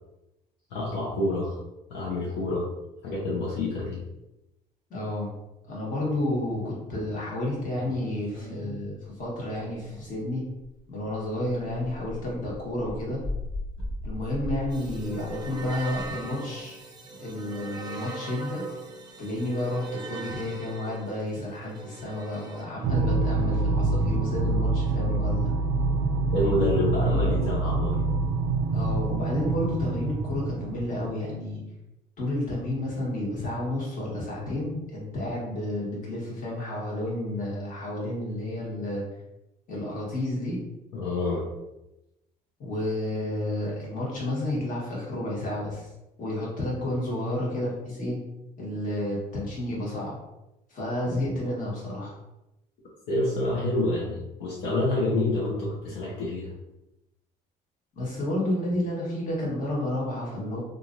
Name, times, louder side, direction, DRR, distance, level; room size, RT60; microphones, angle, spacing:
voice 1, 0.7-1.6 1.9-2.7 3.0-4.0 26.3-28.0 40.9-41.5 53.1-56.5, left 2 dB, 85° left, -5 dB, 0.8 m, -27 dB
voice 2, 4.9-5.3 5.7-10.5 10.9-13.2 14.0-16.8 17.2-18.6 19.2-25.5 28.7-31.6 32.2-39.0 39.7-40.6 42.6-45.9 46.2-48.2 48.6-50.1 50.7-52.1 57.9-60.6, left 1 dB, 50° left, -4 dB, 1.3 m, -31 dB
sound 1, 7.7-10.8 11.1-16.1, left 1 dB, 5° left, 1.3 m, -38 dB
sound 2, 14.7-22.6, right 3 dB, 25° right, 0.6 m, -40 dB
sound 3, 22.8-31.1, right 3 dB, 85° right, 0.4 m, -26 dB
2.9 x 2.5 x 2.5 m, 0.93 s
cardioid pair, 110°, 17 cm